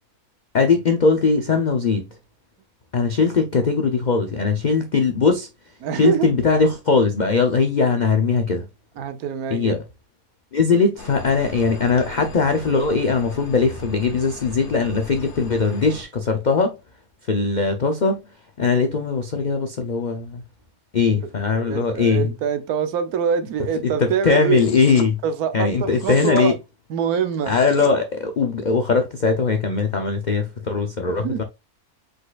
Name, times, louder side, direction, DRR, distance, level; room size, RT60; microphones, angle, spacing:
voice 1, 0.5-2.1 2.9-5.5 5.9-8.7 9.5-9.8 10.5-16.8 17.2-18.2 18.6-20.4 20.9-22.3 23.8-25.2 25.5-26.5 27.5-31.4, left 4 dB, 65° left, 0.4 m, -20 dB
voice 2, 5.8-6.3 9.0-9.8 21.5-24.7 25.2-26.6 26.9-27.5 31.1-31.4, right 7 dB, 75° right, 1.2 m, -24 dB
sound 1, 11.0-16.0, left 2 dB, 50° left, 1.4 m, -38 dB
sound 2, 24.5-25.1 26.0-26.5 27.3-27.9, left 4 dB, 80° left, 1.4 m, -34 dB
4.9 x 4.1 x 2.3 m
omnidirectional pair, 1.6 m